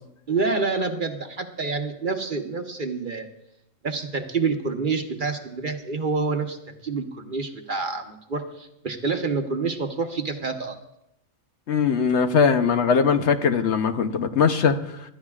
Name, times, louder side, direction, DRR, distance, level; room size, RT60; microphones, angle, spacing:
voice 1, 0.3-3.3 3.8-10.8, right 4 dB, 45° right, 5 dB, 1.1 m, -27 dB
voice 2, 11.7-14.8, left 6 dB, 65° left, 8 dB, 1.0 m, -20 dB
26.0 x 12.5 x 2.4 m, 0.82 s
omnidirectional pair, 1.3 m